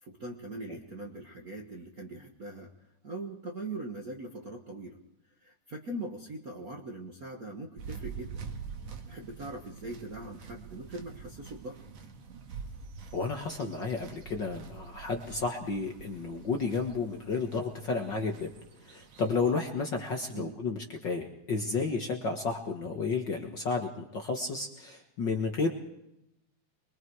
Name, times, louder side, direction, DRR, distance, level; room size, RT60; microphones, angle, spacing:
voice 1, 0.0-2.7 3.0-5.0 5.4-8.4 9.1-11.8 20.3-20.6, right 2 dB, 40° right, 2 dB, 1.4 m, -41 dB
sound 1, 7.8-19.6, right 5 dB, 60° right, 2.9 m, -46 dB
voice 2, 13.1-18.5 18.8-25.7, left 4 dB, 45° left, 3 dB, 1.6 m, -32 dB
23.5 x 23.5 x 4.7 m, 0.86 s
omnidirectional pair, 3.5 m